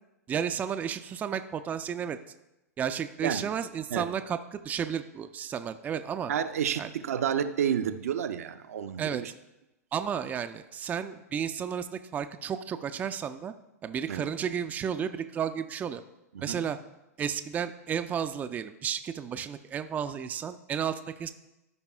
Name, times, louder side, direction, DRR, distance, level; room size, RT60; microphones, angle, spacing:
voice 1, 0.3-2.2 2.8-6.3 6.8-6.9 9.0-9.2 9.9-13.5 13.8-16.0 16.4-16.8 17.2-21.3, right 8 dB, 20° right, 9 dB, 0.4 m, -32 dB
voice 2, 6.3-9.3 14.1-14.3 16.3-16.6, right 8 dB, 65° right, 9 dB, 0.6 m, -30 dB
15.0 x 5.3 x 2.3 m, 0.94 s
figure-of-eight pair, 100°, 9 cm